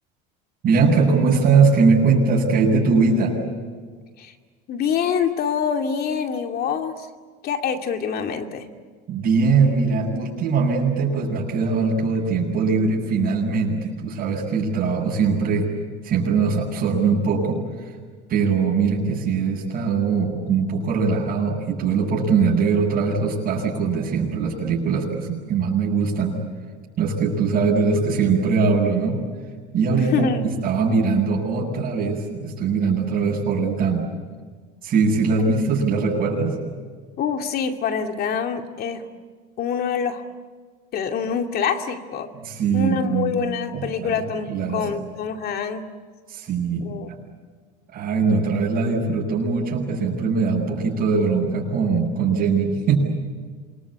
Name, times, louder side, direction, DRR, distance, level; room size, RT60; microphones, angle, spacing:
voice 1, 0.6-3.3 9.1-15.7 16.0-17.6 18.3-26.4 27.0-29.2 29.7-30.3 30.6-34.0 34.8-36.5 42.3-43.3 43.7-44.2 44.5-44.8 46.3-46.9 47.9-53.0, right 4 dB, 45° right, -7 dB, 7.4 m, -21 dB
voice 2, 4.7-7.1 7.4-8.6 29.9-30.5 37.2-39.0 39.6-40.2 40.9-42.3 42.7-45.8 46.8-47.1, left 6 dB, 50° left, 5 dB, 2.6 m, -25 dB
27.5 x 22.0 x 8.8 m, 1.5 s
supercardioid pair, 110°, 21 cm